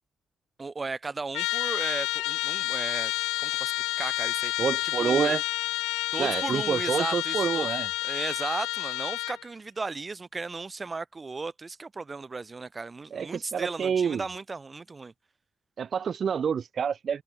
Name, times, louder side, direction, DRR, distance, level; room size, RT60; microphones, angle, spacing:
voice 1, 0.6-3.1 3.4-3.7 4.0-4.5 5.0-5.4 6.1-7.7 8.0-15.1, right 3 dB, 35° right, 2.7 m, -35 dB
Trumpet, 1.3-9.4, left 19 dB, 85° left, 0.9 m, -30 dB
voice 2, 4.6-5.4 6.2-7.9 13.1-14.2 15.8-17.2, right 7 dB, 60° right, 1.2 m, -28 dB
open air
hypercardioid pair, 40°, 0 cm